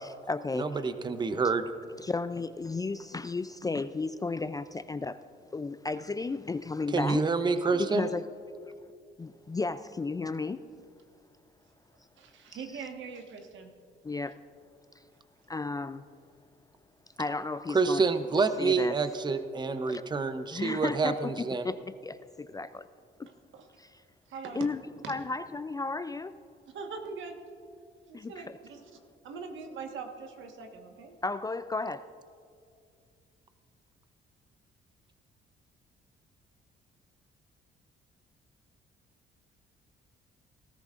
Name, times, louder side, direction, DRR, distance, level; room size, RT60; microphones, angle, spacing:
voice 1, 0.0-0.8 2.0-5.2 5.5-7.2 7.8-8.3 9.2-10.6 12.5-12.6 14.0-14.4 15.0-15.1 15.5-16.0 17.2-18.0 18.6-19.0 19.9-20.0 20.5-22.9 23.2-23.3 23.8-24.0 24.5-24.8 25.1-26.4 28.1-28.6 31.2-32.1, left 3 dB, 20° left, 0.3 m, -34 dB
voice 2, 0.5-1.6 6.9-8.1 17.7-21.7, right 4 dB, 20° right, 0.6 m, -27 dB
voice 3, 7.7-8.0 12.2-13.7 23.5-23.7 24.3-24.7 25.0-25.1 26.7-27.4 28.1-28.8 29.2-31.2, right 5 dB, 75° right, 1.4 m, -42 dB
18.5 x 13.5 x 2.5 m
cardioid pair, 90°, 20 cm